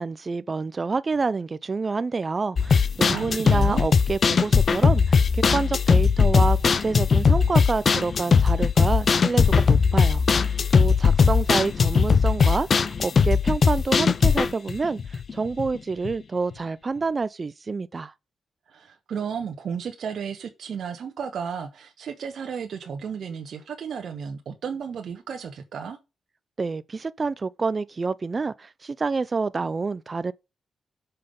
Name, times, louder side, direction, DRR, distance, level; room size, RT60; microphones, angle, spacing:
voice 1, 0.0-18.1 26.6-30.3, right 4 dB, 40° right, 0.4 m, -28 dB
sound 1, 2.6-15.8 16.0-16.1 16.5-16.6, left 5 dB, 55° left, 0.6 m, -19 dB
voice 2, 3.1-3.8 18.7-26.0, right 6 dB, 70° right, 1.0 m, -33 dB
5.8 x 5.1 x 6.7 m
supercardioid pair, 50°, 0 cm